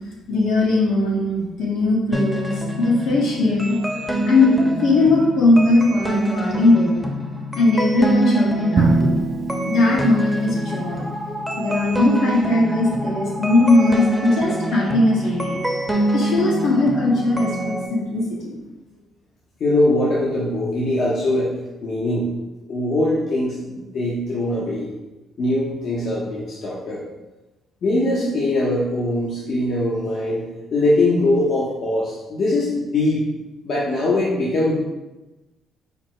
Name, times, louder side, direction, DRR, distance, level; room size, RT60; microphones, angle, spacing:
voice 1, 0.3-7.1 7.5-9.3 9.7-11.0 11.6-15.6 16.1-18.6, left 2 dB, 85° left, -4 dB, 1.4 m, -19 dB
sound 1, 2.1-17.9, right 1 dB, 5° left, 0.7 m, -25 dB
Drum, 8.8-10.8, right 3 dB, 50° right, 0.4 m, -22 dB
voice 2, 19.6-21.5 21.8-22.3 22.7-24.9 25.4-27.0 27.8-30.4 30.7-33.2 33.6-34.8, left 1 dB, 65° left, -5 dB, 0.8 m, -21 dB
5.0 x 2.1 x 4.6 m, 1.1 s
cardioid pair, 90°, 0 cm